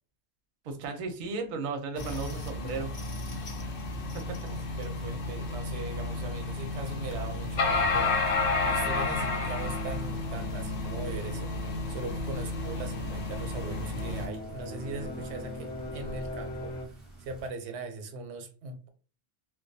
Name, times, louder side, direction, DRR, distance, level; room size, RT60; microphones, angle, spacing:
voice 1, 0.6-2.9 4.1-4.4, right 4 dB, 55° right, 6 dB, 0.6 m, -35 dB
sound 1, 2.0-14.3, left 3 dB, 80° left, 0.9 m, -32 dB
voice 2, 4.4-8.2 8.6-18.9, right 3 dB, 90° right, 7 dB, 0.9 m, -40 dB
sound 2, 5.9-16.9, left 1 dB, 50° left, 0.6 m, -42 dB
sound 3, 7.7-17.5, right 2 dB, ahead, 0.5 m, -47 dB
2.3 x 2.2 x 2.6 m, 0.36 s
omnidirectional pair, 1.1 m